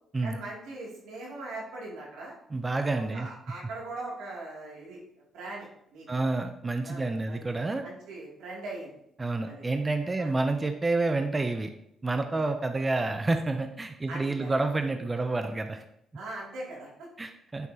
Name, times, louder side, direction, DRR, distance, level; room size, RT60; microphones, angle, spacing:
voice 1, 0.2-2.3 3.1-5.0 5.3-6.1 6.8-7.4 7.8-8.9 9.4-9.6 10.2-10.3 14.1-14.5 16.1-17.1, right 2 dB, 90° right, -4 dB, 2.6 m, -40 dB
voice 2, 2.5-3.3 6.1-7.8 9.2-11.7 12.0-15.8 17.2-17.7, right 3 dB, 25° right, 7 dB, 0.6 m, -29 dB
9.2 x 5.7 x 2.9 m, 0.76 s
cardioid pair, 90°, 0 cm